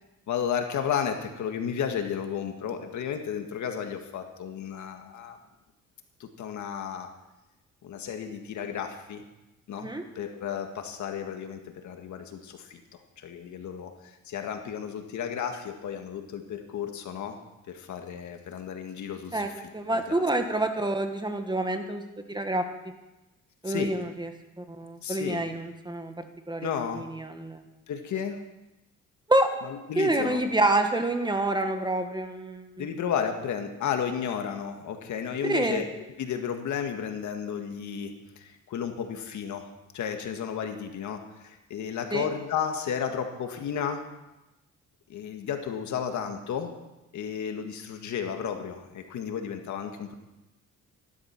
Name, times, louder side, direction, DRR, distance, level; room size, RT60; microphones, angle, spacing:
voice 1, 0.3-5.4 6.2-7.1 7.8-9.2 9.7-17.4 17.7-20.2 23.6-24.0 25.0-25.4 26.6-27.0 27.9-28.5 29.6-30.4 32.8-35.9 36.2-39.7 39.9-44.0 45.1-46.7 47.1-50.2, left 7 dB, 70° left, 5 dB, 1.9 m, -33 dB
voice 2, 19.7-22.0 22.3-22.6 23.6-24.3 24.6-26.7 27.0-27.6 29.3-29.5 30.0-32.9 35.4-35.8 42.1-42.3, right 2 dB, 15° right, 6 dB, 1.8 m, -27 dB
14.5 x 12.0 x 6.0 m, 1.0 s
cardioid pair, 90°, 30 cm